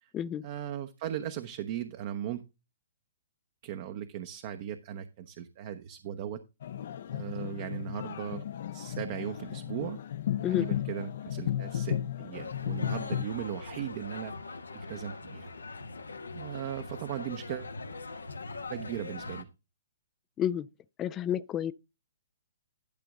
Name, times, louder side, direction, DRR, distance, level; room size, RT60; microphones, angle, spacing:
voice 1, 0.4-2.4 3.6-6.4 7.1-8.4 8.7-10.0 10.4-14.4 14.7-15.5 16.3-17.7 18.7-19.5, right 10 dB, 45° right, 1.0 m, -38 dB
sound 1, 6.6-13.3, left 11 dB, 60° left, 0.8 m, -34 dB
sound 2, 12.3-19.4, left 3 dB, 90° left, 1.3 m, -42 dB
voice 2, 21.0-21.7, left 10 dB, 20° left, 0.4 m, -30 dB
12.0 x 6.1 x 3.7 m
hypercardioid pair, 130°, 0 cm